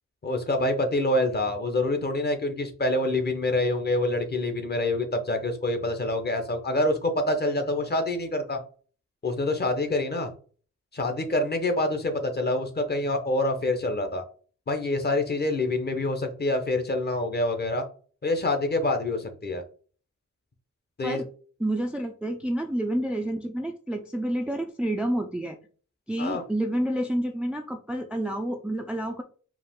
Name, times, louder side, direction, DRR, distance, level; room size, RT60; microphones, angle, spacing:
voice 1, 0.2-8.6 9.2-10.3 10.9-14.2 14.7-17.8 18.2-19.6 21.0-21.2 26.2-26.4, left 2 dB, 35° left, 6 dB, 0.8 m, -26 dB
voice 2, 21.6-25.6 26.1-29.2, right 1 dB, 5° right, 4 dB, 0.3 m, -29 dB
4.8 x 2.5 x 3.5 m, 0.41 s
wide cardioid pair, 140°, 30 cm